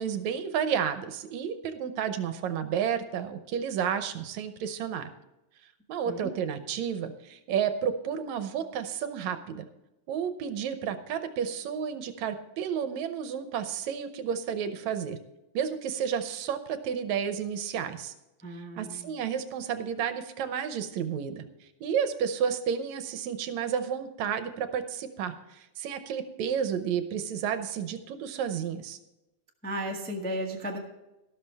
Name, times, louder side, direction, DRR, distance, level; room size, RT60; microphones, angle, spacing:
voice 1, 0.0-5.1 5.9-9.7 10.1-15.2 15.5-18.1 18.5-21.4 21.8-29.0, right 8 dB, 75° right, 9 dB, 2.1 m, -31 dB
voice 2, 18.4-19.2 29.6-30.8, right 1 dB, 10° left, 0 dB, 0.6 m, -35 dB
13.0 x 12.5 x 3.5 m, 0.97 s
omnidirectional pair, 3.4 m